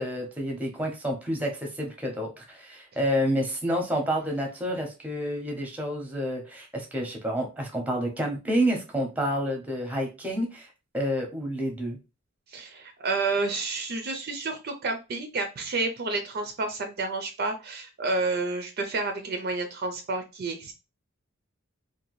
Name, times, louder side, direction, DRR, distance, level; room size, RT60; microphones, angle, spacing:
voice 1, 0.0-10.7 10.9-12.0, equal, 5° right, 1 dB, 0.6 m, -29 dB
voice 2, 12.5-20.7, right 3 dB, 45° right, 5 dB, 0.4 m, -30 dB
2.7 x 2.2 x 2.9 m, 0.28 s
head